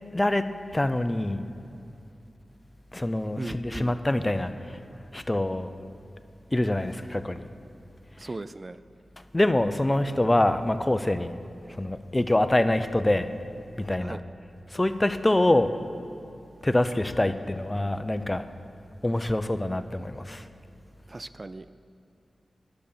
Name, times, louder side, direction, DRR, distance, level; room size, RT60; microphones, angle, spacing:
voice 1, 0.1-0.4 0.7-1.4 2.9-4.8 5.1-5.7 6.5-7.5 8.2-8.3 9.3-11.4 11.7-13.3 13.8-14.2 14.7-15.7 16.6-18.4 19.0-20.5, left 1 dB, 25° left, 11 dB, 0.5 m, -25 dB
voice 2, 3.4-3.9 8.2-8.8 14.0-14.2 21.1-21.7, right 2 dB, 40° right, 13 dB, 0.3 m, -37 dB
10.0 x 6.9 x 6.7 m, 2.7 s
cardioid pair, 45°, 0 cm